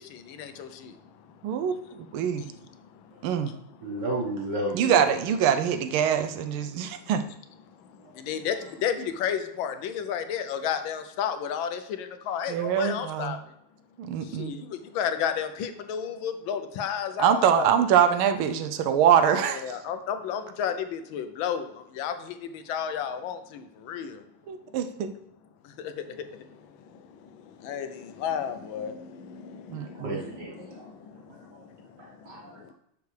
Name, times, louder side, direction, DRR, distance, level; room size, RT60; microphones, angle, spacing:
voice 1, 1.4-2.5 3.2-3.5 4.7-7.2 12.5-13.4 14.0-14.6 17.2-19.8 24.5-25.1 29.7-30.2, right 9 dB, 80° right, 10 dB, 1.5 m, -24 dB
voice 2, 3.8-5.1 29.8-30.9 31.5-31.6 32.0-32.7, right 1 dB, 55° right, -2 dB, 1.8 m, -33 dB
voice 3, 9.2-11.8 12.3-13.4 14.4-14.6 15.0-17.7 19.4-21.6 22.0-22.1 22.7-23.4 23.9-24.1 27.7-27.9 28.2-28.9, left 8 dB, 75° left, 9 dB, 1.3 m, -30 dB
6.9 x 6.4 x 3.3 m, 0.78 s
omnidirectional pair, 2.3 m